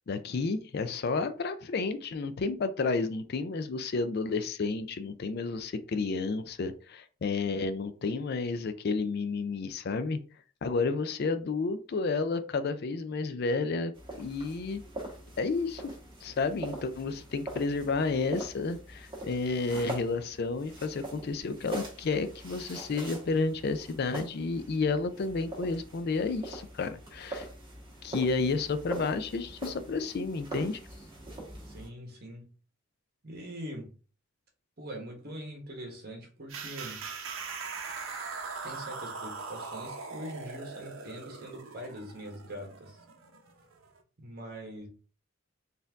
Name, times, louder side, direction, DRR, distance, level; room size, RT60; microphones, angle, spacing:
voice 1, 0.1-10.2 10.6-14.8 15.4-15.9 16.2-27.5 28.0-30.8, left 4 dB, 50° left, 11 dB, 0.4 m, -31 dB
sound 1, 13.9-31.9, right 1 dB, 20° right, 1.4 m, -43 dB
voice 2, 31.6-32.5 33.2-33.9 34.8-37.0 38.6-43.0 44.2-44.9, equal, 45° right, 2 dB, 1.3 m, -43 dB
sound 2, 36.5-44.0, right 4 dB, 65° right, 0.8 m, -41 dB
4.2 x 2.6 x 3.5 m, 0.37 s
head